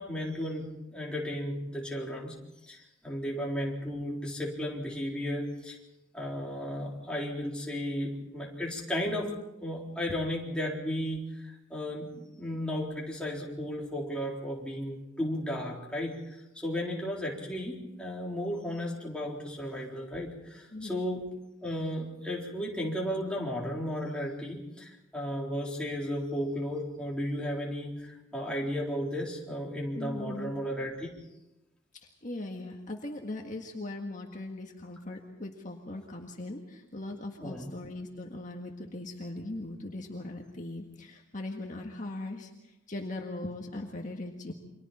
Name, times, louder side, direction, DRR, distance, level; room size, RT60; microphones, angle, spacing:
voice 1, 0.0-2.3 2.7-5.8 6.1-9.4 9.6-21.3 21.6-31.1 37.4-37.7, equal, 5° left, -3 dB, 3.8 m, -34 dB
voice 2, 20.7-21.0 30.0-30.5 32.0-44.5, left 2 dB, 40° left, 1 dB, 1.7 m, -39 dB
29.5 x 24.5 x 4.3 m, 0.93 s
head